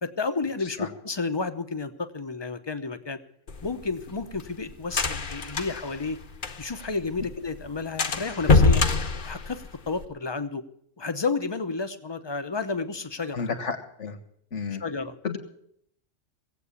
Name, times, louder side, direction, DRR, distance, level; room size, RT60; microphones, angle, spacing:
voice 1, 0.0-3.2 3.6-6.2 6.6-8.8 9.3-10.6 11.0-13.5 14.8-15.2, left 4 dB, 25° left, 9 dB, 0.7 m, -31 dB
sound 1, 3.5-6.9 7.2-7.3 7.6-7.7 8.0-10.0, left 3 dB, 45° left, 1.0 m, -24 dB
voice 2, 13.3-14.2 14.5-14.8 15.2-15.4, left 5 dB, 75° left, 7 dB, 1.8 m, -32 dB
17.5 x 8.1 x 8.3 m, 0.69 s
omnidirectional pair, 1.3 m